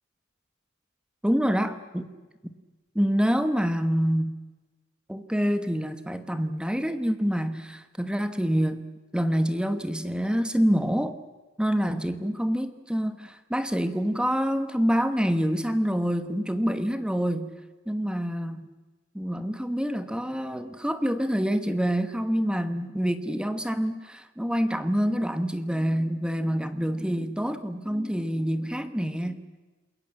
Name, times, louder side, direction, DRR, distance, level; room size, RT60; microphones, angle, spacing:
voice 1, 1.2-2.1 2.4-2.5 2.9-4.3 5.1-8.8 9.1-11.2 11.6-17.5 17.9-18.7 19.1-29.4, equal, 5° right, 10 dB, 1.1 m, -26 dB
28.0 x 21.5 x 7.7 m, 1.3 s
head